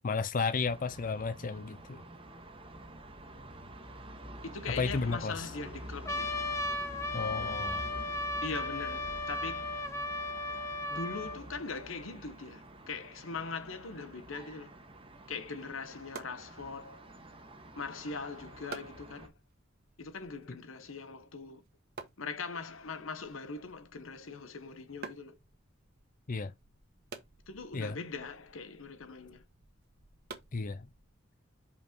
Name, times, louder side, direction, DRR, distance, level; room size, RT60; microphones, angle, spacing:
voice 1, 0.0-2.0 4.8-5.5 7.1-7.9 26.3-26.5 27.7-28.0 30.5-30.9, left 4 dB, 40° left, 0.5 m, -33 dB
sound 1, 0.6-19.3, right 1 dB, 25° right, 1.3 m, -48 dB
voice 2, 4.4-6.5 8.4-9.9 10.9-14.7 15.3-17.1 17.8-19.3 20.0-21.6 22.2-25.4 27.5-29.4, left 4 dB, 85° left, 1.1 m, -41 dB
Trumpet, 6.1-11.4, left 2 dB, 15° left, 1.1 m, -35 dB
sound 2, 16.1-31.3, right 4 dB, 50° right, 1.4 m, -53 dB
5.7 x 4.5 x 4.4 m
head